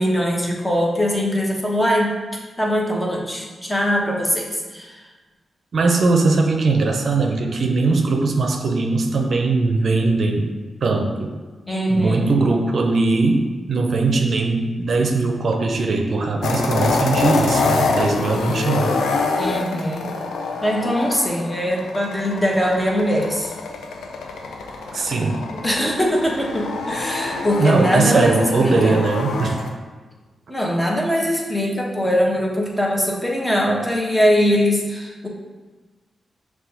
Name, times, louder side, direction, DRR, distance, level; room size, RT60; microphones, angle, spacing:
voice 1, 0.0-2.1 2.6-5.0 11.7-12.3 19.4-20.0 20.6-23.5 25.6-29.0 30.5-35.3, equal, 15° left, -2 dB, 1.1 m, -21 dB
voice 2, 5.7-10.5 10.8-11.3 11.9-13.4 13.7-19.0 24.9-25.4 27.6-29.6, right 3 dB, 65° right, 3 dB, 0.5 m, -20 dB
sound 1, 16.4-29.7, left 3 dB, 85° left, 0.4 m, -25 dB
6.0 x 2.3 x 2.8 m, 1.3 s
supercardioid pair, 50°, 0 cm